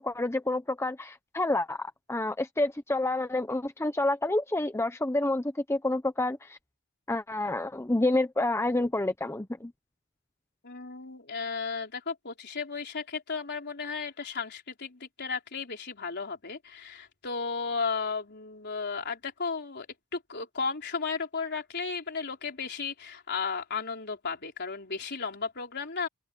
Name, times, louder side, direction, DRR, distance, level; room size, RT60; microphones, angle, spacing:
voice 1, 0.0-6.6 7.1-9.7, left 2 dB, 10° left, 0.8 m, -28 dB
voice 2, 10.6-19.9 20.1-26.1, left 5 dB, 50° left, 4.1 m, -34 dB
open air
head